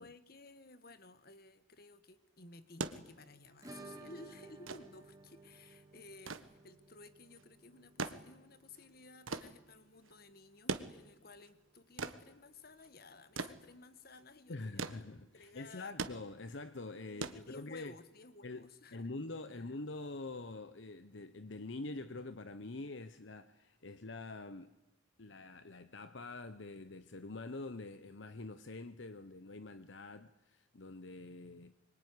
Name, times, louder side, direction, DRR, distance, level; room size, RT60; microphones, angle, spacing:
voice 1, 0.0-15.0 15.3-16.0 17.1-19.1 19.6-19.7, left 3 dB, 50° left, 12 dB, 1.5 m, -56 dB
sound 1, 2.6-18.1 19.3-19.4, right 3 dB, 85° right, 1.5 m, -44 dB
Acoustic guitar / Strum, 3.6-12.2 12.5-12.6 12.9-13.0 13.3-13.4 15.5-15.6 16.7-16.8, right 2 dB, 15° right, 2.1 m, -57 dB
voice 2, 14.5-17.9 18.4-24.7 25.2-31.7, left 2 dB, 65° left, 11 dB, 1.0 m, -45 dB
25.0 x 23.0 x 9.8 m, 0.93 s
head